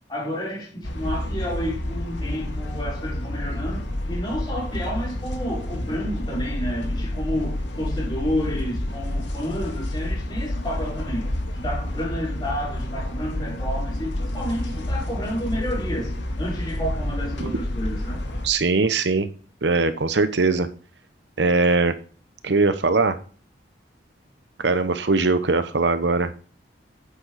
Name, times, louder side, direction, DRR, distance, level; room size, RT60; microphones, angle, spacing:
voice 1, 0.1-18.3, equal, 25° left, 4.9 m, -30 dB
sound 1, 0.8-18.5, left 1 dB, 75° left, 2.1 m, -29 dB
voice 2, 18.4-19.3 19.6-20.7 21.4-21.9 22.4-23.2 24.6-26.3, right 3 dB, 70° right, 0.9 m, -21 dB
10.0 x 9.0 x 4.1 m
head